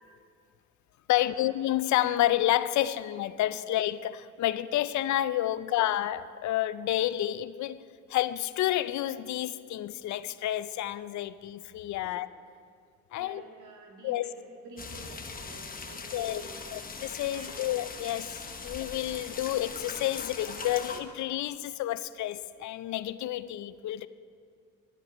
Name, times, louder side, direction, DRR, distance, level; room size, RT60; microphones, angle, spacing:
voice 1, 1.1-7.8 8.1-12.3 13.1-13.4 14.0-14.2 16.1-16.4 16.7-24.1, left 13 dB, 70° left, 0.5 m, -30 dB
voice 2, 13.2-16.8 17.3-17.7, right 3 dB, 75° right, 2.1 m, -50 dB
sound 1, 14.8-21.0, left 4 dB, 30° left, 1.0 m, -41 dB
11.0 x 10.0 x 5.1 m
cardioid pair, 90°, 30 cm